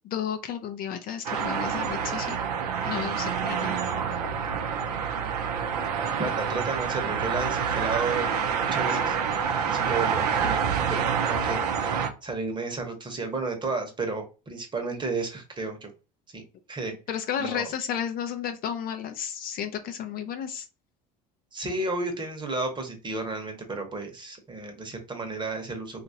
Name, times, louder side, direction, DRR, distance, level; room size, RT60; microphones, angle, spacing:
voice 1, 0.0-2.4 2.9-3.8 17.1-20.6, left 9 dB, 50° left, 7 dB, 0.5 m, -32 dB
sound 1, 1.2-12.1, right 7 dB, 85° right, 0.5 m, -27 dB
voice 2, 6.2-9.2 9.7-10.6 10.9-15.9 16.3-16.4 16.7-16.9 17.4-17.7 21.5-26.0, right 3 dB, 25° right, 4 dB, 1.0 m, -32 dB
2.8 x 2.4 x 2.7 m, 0.31 s
hypercardioid pair, 75°, 20 cm